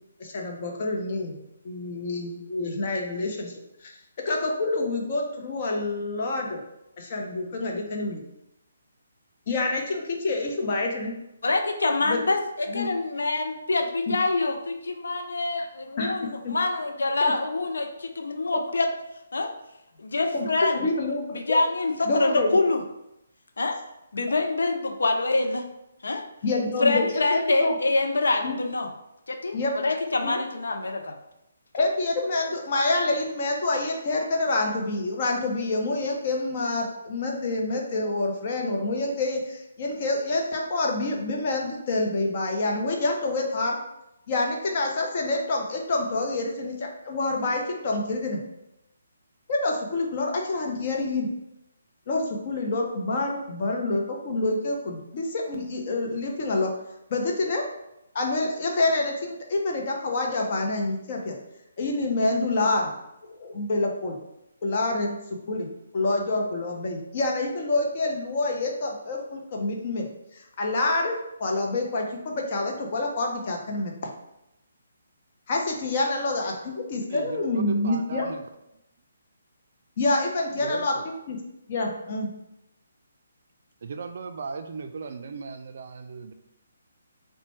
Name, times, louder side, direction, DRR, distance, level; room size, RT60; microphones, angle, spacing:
voice 1, 0.2-1.4 1.6-3.5 3.8-3.9 4.2-6.6 7.0-8.2 9.5-11.1 12.0-12.2 12.7-12.9 14.1-14.2 16.0-16.1 16.4-16.5 20.3-20.5 20.7-21.6 22.1-22.6 26.4-27.7 28.4-28.6 29.5-29.7 30.2-30.4 31.7-43.8 44.3-48.4 49.5-51.3 52.1-56.7 57.1-57.6 58.1-61.4 61.8-62.9 63.2-64.2 64.6-70.1 70.3-74.1 75.5-78.3 80.0-81.4 81.7-82.3, left 2 dB, 45° left, 1 dB, 0.8 m, -27 dB
voice 2, 11.4-18.9 19.3-19.5 20.0-20.8 21.3-22.8 23.6-23.8 24.1-25.6 26.0-26.2 26.8-28.9 29.3-31.2, left 3 dB, 80° left, 5 dB, 0.5 m, -25 dB
voice 3, 77.1-78.5 78.7-78.8 80.5-81.1 83.8-86.3, right 5 dB, 55° right, 7 dB, 0.3 m, -37 dB
4.0 x 2.1 x 3.2 m, 0.85 s
hypercardioid pair, 150°, 0 cm